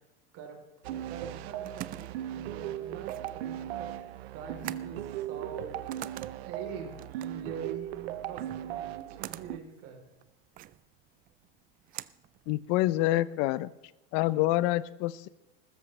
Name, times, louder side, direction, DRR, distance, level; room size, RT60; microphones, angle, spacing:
sound 1, 0.8-9.6, right 12 dB, 90° right, 0.8 m, -38 dB
voice 1, 0.9-5.7 6.4-10.0, right 6 dB, 50° right, 3 dB, 3.5 m, -44 dB
sound 2, 1.6-13.1, right 14 dB, 30° right, 0.4 m, -46 dB
voice 2, 12.5-13.7 14.1-15.3, left 16 dB, 50° left, 18 dB, 0.7 m, -27 dB
20.0 x 13.5 x 3.3 m, 0.98 s
supercardioid pair, 140°, 30 cm